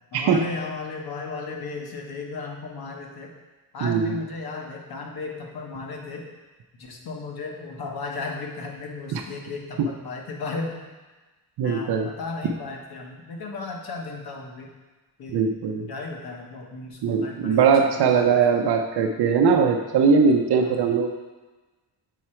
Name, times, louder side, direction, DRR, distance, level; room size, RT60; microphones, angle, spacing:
voice 1, 0.1-3.3 3.7-6.2 6.8-10.9 11.6-14.7 15.2-15.5 15.9-18.6 20.5-20.8, left 3 dB, 70° left, 1 dB, 1.1 m, -35 dB
voice 2, 3.8-4.2 9.1-9.2 9.8-9.9 11.6-12.1 15.3-15.9 17.0-21.1, right 5 dB, 85° right, 3 dB, 0.6 m, -20 dB
7.0 x 4.7 x 4.3 m, 1.2 s
wide cardioid pair, 175°, 38 cm